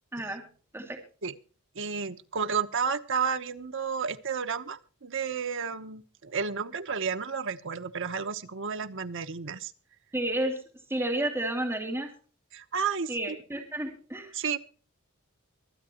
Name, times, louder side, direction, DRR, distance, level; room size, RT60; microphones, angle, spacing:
voice 1, 1.7-9.7 12.5-13.4 14.3-14.6, right 6 dB, 60° right, 9 dB, 1.0 m, -32 dB
voice 2, 10.1-10.6 10.9-12.1 13.1-14.3, right 1 dB, 10° right, 2 dB, 2.4 m, -31 dB
24.5 x 8.8 x 3.0 m, 0.40 s
head